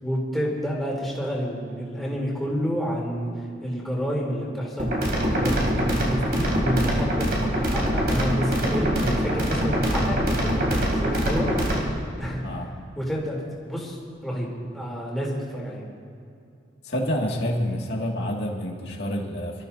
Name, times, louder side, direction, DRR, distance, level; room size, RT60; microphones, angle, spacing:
voice 1, 0.0-12.4 12.9-13.4 13.6-14.0 14.2-14.5 14.7-15.8, equal, ahead, -5 dB, 3.4 m, -29 dB
sound 1, 4.8-11.8, equal, 55° right, 3.2 m, -24 dB
voice 2, 16.8-19.7, equal, 60° left, -1 dB, 2.3 m, -28 dB
25.5 x 14.0 x 2.8 m, 2.5 s
head